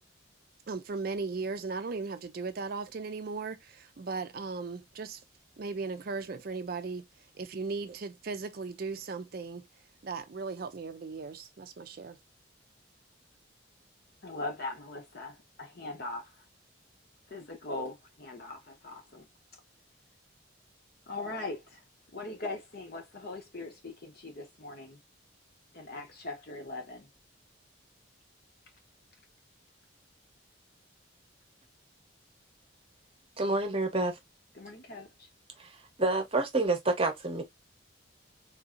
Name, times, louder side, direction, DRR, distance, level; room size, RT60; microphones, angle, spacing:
voice 1, 0.7-5.2 5.6-7.1 7.4-9.7 10.0-12.2, right 4 dB, 45° right, 0.4 m, -37 dB
voice 2, 14.2-16.3 17.3-19.3 21.1-21.8 22.1-25.0 25.7-27.1 34.5-35.3, left 2 dB, 50° left, 0.9 m, -40 dB
voice 3, 33.4-34.2 35.6-35.7 36.0-37.4, right 2 dB, 30° right, 0.8 m, -28 dB
3.6 x 2.7 x 2.4 m
head